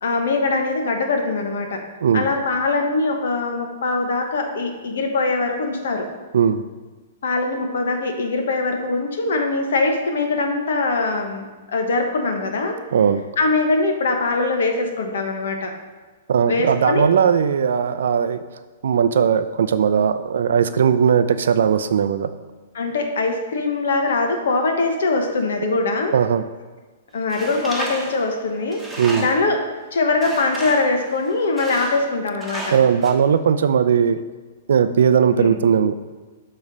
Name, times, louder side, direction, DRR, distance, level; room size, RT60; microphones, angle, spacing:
voice 1, 0.0-1.8 2.1-6.1 7.2-12.8 13.4-15.7 16.5-17.1 22.7-26.1 27.1-28.8 29.2-29.6 29.9-32.7 35.3-35.5, left 3 dB, 75° left, 4 dB, 1.1 m, -22 dB
voice 2, 12.9-13.2 16.3-18.4 18.8-22.3 26.1-26.4 29.0-29.3 32.7-34.2 34.7-35.9, right 7 dB, 70° right, 11 dB, 0.4 m, -18 dB
Tools, 27.3-29.6 30.2-31.0 31.6-32.1 32.4-33.1, right 2 dB, 5° right, 1.2 m, -33 dB
7.1 x 3.3 x 5.4 m, 1.3 s
hypercardioid pair, 125°, 0 cm